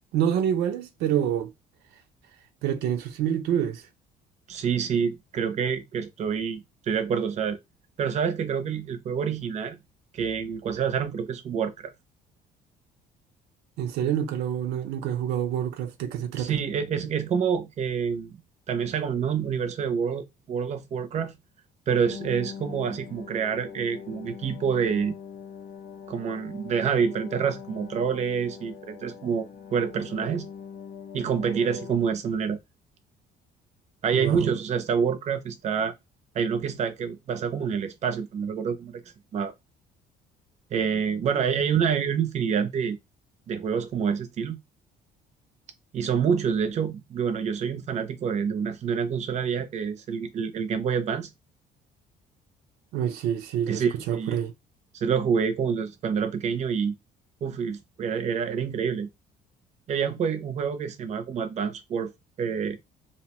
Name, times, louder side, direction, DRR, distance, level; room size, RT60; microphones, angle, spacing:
voice 1, 0.1-1.5 2.6-3.8 13.8-16.6 34.1-34.5 52.9-54.5, right 9 dB, 85° right, 0.5 m, -27 dB
voice 2, 4.5-7.6 8.0-9.8 10.1-11.9 16.4-18.4 18.7-21.3 21.9-25.1 26.1-30.5 31.1-32.6 34.0-35.9 36.3-39.0 39.3-39.5 40.7-43.0 43.5-44.6 45.9-51.3 53.7-54.4 54.9-57.0 57.4-59.1 59.9-62.1 62.4-62.8, right 7 dB, 40° right, 0.6 m, -27 dB
sound 1, 22.1-32.0, left 7 dB, 80° left, 0.6 m, -42 dB
2.7 x 2.1 x 2.9 m
cardioid pair, 110°, 17 cm